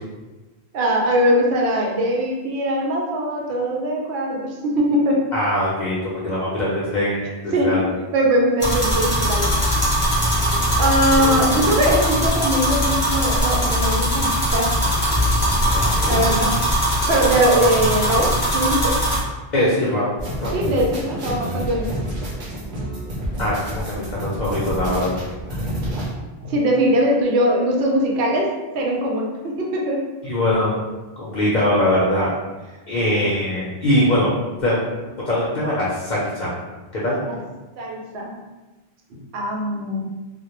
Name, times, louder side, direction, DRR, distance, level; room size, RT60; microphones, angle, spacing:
voice 1, 0.7-5.3 6.4-6.5 7.5-7.9 8.1-9.5 10.8-14.8 16.1-16.6 17.1-19.0 20.5-21.9 25.7-25.8 26.4-30.0 37.2-37.4 37.8-38.3 39.1-40.1, equal, 90° right, -1 dB, 0.8 m, -21 dB
voice 2, 5.3-7.8 11.2-11.7 15.7-16.2 19.5-20.1 20.4-20.6 23.4-25.1 30.2-30.7 31.2-32.3 32.9-34.3 34.6-34.8 35.3-36.5 36.9-37.2, left 1 dB, 55° left, -7 dB, 0.6 m, -22 dB
sound 1, 8.6-19.2, equal, 10° left, 0.6 m, -20 dB
sound 2, 20.2-26.1, equal, 55° right, 0.7 m, -29 dB
2.1 x 2.0 x 2.9 m, 1.2 s
omnidirectional pair, 1.1 m